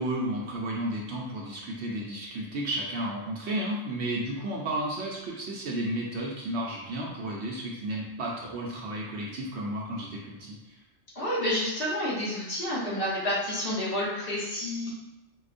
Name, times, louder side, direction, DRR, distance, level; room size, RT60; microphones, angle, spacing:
voice 1, 0.0-10.8, right 1 dB, 65° right, -3 dB, 0.8 m, -33 dB
voice 2, 11.1-14.9, left 1 dB, 50° left, -7 dB, 1.1 m, -29 dB
4.7 x 2.1 x 2.5 m, 0.93 s
omnidirectional pair, 1.3 m